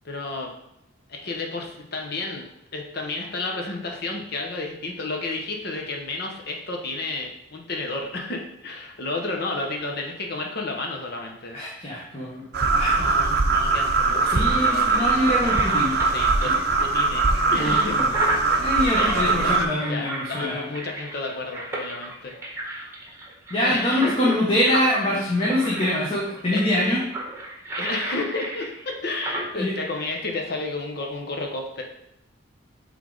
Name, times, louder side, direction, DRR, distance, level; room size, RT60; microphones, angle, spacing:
voice 1, 0.0-0.5 1.1-2.5 2.7-11.6 11.9-12.0 12.8-15.5 16.1-18.0 18.3-18.5 19.0-22.3 22.6-22.9 23.6-24.3 26.5-26.6 27.8-31.8, left 3 dB, 50° left, 1 dB, 1.0 m, -32 dB
voice 2, 11.5-12.4 12.7-13.1 14.3-15.9 16.4-16.5 17.6-18.1 18.6-20.7 23.5-27.0 29.6-29.7, left 1 dB, 30° left, -6 dB, 1.2 m, -24 dB
sound 1, 12.5-19.6, right 3 dB, 50° right, 0.6 m, -21 dB
sound 2, 13.7-29.4, right 1 dB, 15° right, 1.1 m, -34 dB
8.3 x 3.5 x 3.9 m, 0.83 s
head